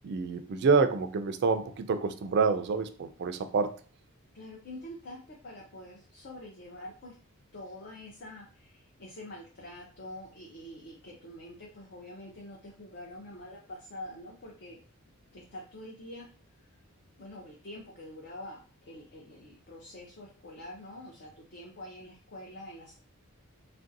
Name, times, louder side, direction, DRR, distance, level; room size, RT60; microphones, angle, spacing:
voice 1, 0.0-3.8, right 4 dB, 50° right, 9 dB, 0.3 m, -27 dB
voice 2, 4.3-7.1 7.5-14.8 15.3-16.3 16.7-16.8 17.2-18.6 18.8-22.9, left 1 dB, 45° left, -2 dB, 0.6 m, -46 dB
3.2 x 2.5 x 2.6 m, 0.40 s
head